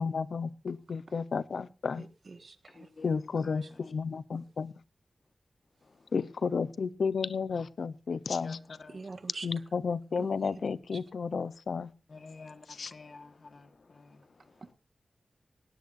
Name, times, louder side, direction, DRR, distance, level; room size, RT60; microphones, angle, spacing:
voice 1, 0.0-2.0 3.0-4.7 6.1-8.6 9.4-11.9 12.8-12.9, left 5 dB, 85° left, 0.8 m, -32 dB
voice 2, 2.0-2.9 3.6-3.7 4.3-4.4 8.9-9.5 10.2-10.3 10.9-11.0 14.6-14.7, right 3 dB, 55° right, 1.6 m, -45 dB
voice 3, 2.8-3.8 8.4-9.0 12.1-12.7 12.9-13.7 13.9-14.2, left 4 dB, 55° left, 1.5 m, -49 dB
19.0 x 17.5 x 2.6 m
wide cardioid pair, 125°, 0 cm